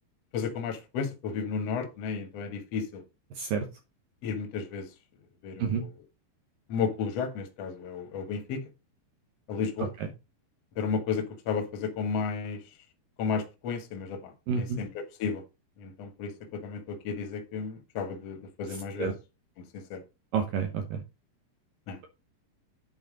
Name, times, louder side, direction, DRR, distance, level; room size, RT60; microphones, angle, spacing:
voice 1, 0.3-3.0 4.2-4.9 5.4-5.9 6.7-8.6 9.5-9.9 10.8-12.6 13.2-14.2 14.5-14.9 15.2-15.4 15.8-19.1 19.9-20.0 21.9-22.0, left 5 dB, 60° left, 1.7 m, -33 dB
voice 2, 3.4-3.7 5.6-5.8 9.8-10.1 14.5-14.8 18.7-19.1 20.3-21.0, right 6 dB, 80° right, 2.0 m, -30 dB
9.5 x 4.4 x 5.0 m
omnidirectional pair, 5.3 m